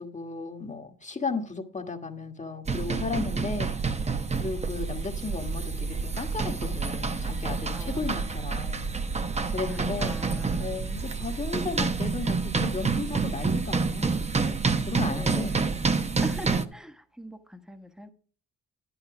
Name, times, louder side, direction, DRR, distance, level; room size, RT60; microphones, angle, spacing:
voice 1, 0.0-3.8 4.4-8.9 9.5-10.2 10.6-15.6, left 4 dB, 25° left, 1.5 m, -35 dB
sound 1, 2.7-16.7, right 4 dB, 20° right, 0.9 m, -28 dB
voice 2, 9.7-10.7 15.1-15.6 16.2-18.1, equal, ahead, 1.3 m, -41 dB
10.5 x 9.9 x 4.9 m
cardioid pair, 90°, 30 cm